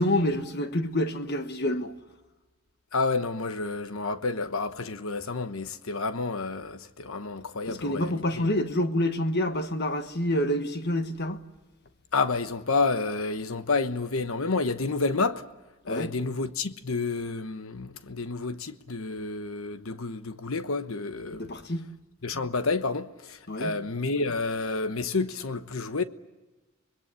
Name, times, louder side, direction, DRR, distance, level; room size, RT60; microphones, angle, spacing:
voice 1, 0.0-1.9 7.7-11.4 15.9-16.1 21.3-21.9 23.5-23.8, left 1 dB, 50° left, 1.4 m, -27 dB
voice 2, 2.9-8.5 12.1-15.4 15.8-21.5 22.2-26.0, left 3 dB, 70° left, 1.1 m, -30 dB
25.5 x 21.5 x 8.4 m
head